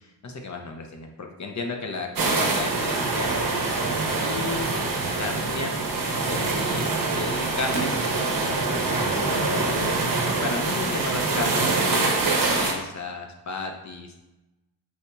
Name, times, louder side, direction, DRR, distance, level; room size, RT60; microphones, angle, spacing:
voice 1, 0.2-3.4 4.2-4.7 5.2-5.8 6.3-8.0 8.4-10.0 10.4-14.1, left 4 dB, 40° left, 3 dB, 0.6 m, -34 dB
sound 1, 2.2-12.7, right 3 dB, 50° right, 0.8 m, -25 dB
4.3 x 2.7 x 2.2 m, 0.95 s
supercardioid pair, 40°, 45 cm